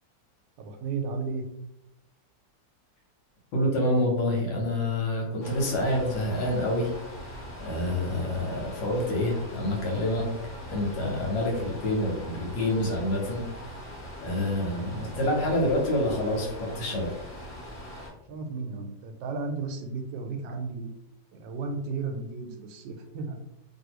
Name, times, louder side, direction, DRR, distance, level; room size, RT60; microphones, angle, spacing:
voice 1, 0.6-1.4 5.2-5.4 14.7-15.6 18.3-20.9 21.3-23.4, right 4 dB, 80° right, 5 dB, 1.2 m, -34 dB
voice 2, 3.5-6.9 7.2-10.3 10.7-13.4 14.2-17.1, left 1 dB, 80° left, 0 dB, 1.6 m, -27 dB
sound 1, 5.4-18.1, equal, 30° left, 1.1 m, -41 dB
2.9 x 2.7 x 2.9 m, 0.84 s
omnidirectional pair, 2.0 m